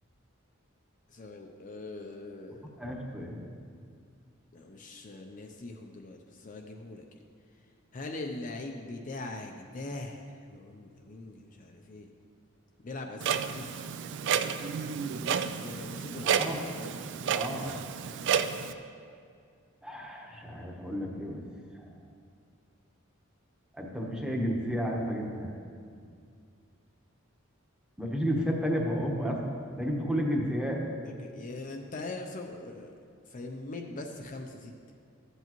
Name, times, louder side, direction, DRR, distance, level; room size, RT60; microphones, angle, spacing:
voice 1, 1.1-2.7 4.5-7.0 7.9-12.1 12.8-13.9 15.0-16.4 17.2-17.4 31.0-32.9 33.3-34.7, left 2 dB, 40° left, 3 dB, 0.5 m, -42 dB
voice 2, 2.8-3.4 16.2-16.6 17.3-17.8 19.8-21.4 23.8-25.5 28.0-29.4 29.7-30.8, equal, 5° right, -1 dB, 1.0 m, -32 dB
Clock, 13.2-18.7, right 7 dB, 60° right, 0.4 m, -31 dB
13.5 x 8.1 x 3.0 m, 2.3 s
head